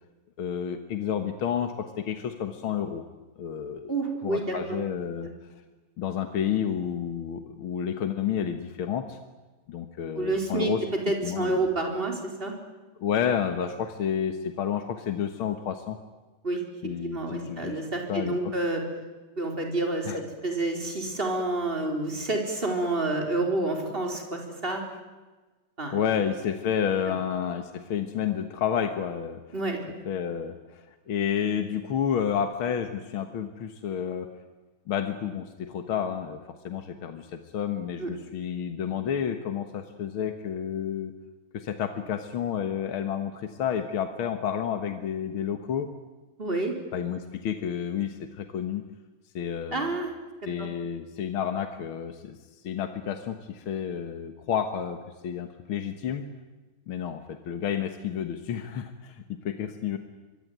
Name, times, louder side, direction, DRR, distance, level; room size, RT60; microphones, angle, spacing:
voice 1, 0.4-3.0 3.4-3.9 4.2-5.3 6.0-9.2 9.7-10.8 11.2-11.7 13.0-16.0 16.8-17.8 18.1-18.4 20.1-20.2 25.9-29.4 30.1-34.3 34.9-36.4 36.6-41.1 41.5-45.9 46.9-48.8 49.3-49.9 50.5-52.4 52.6-55.0 55.2-56.3 56.9-60.0, left 8 dB, 75° left, 7 dB, 2.2 m, -30 dB
voice 2, 3.9-4.8 5.2-5.3 10.1-12.6 16.4-16.6 17.0-18.8 19.4-24.8 25.8-26.0 29.5-29.8 38.0-38.1 46.4-46.7 49.7-50.1 50.6-50.7, right 2 dB, 25° right, 2 dB, 4.6 m, -29 dB
25.5 x 23.0 x 9.4 m, 1.2 s
omnidirectional pair, 2.3 m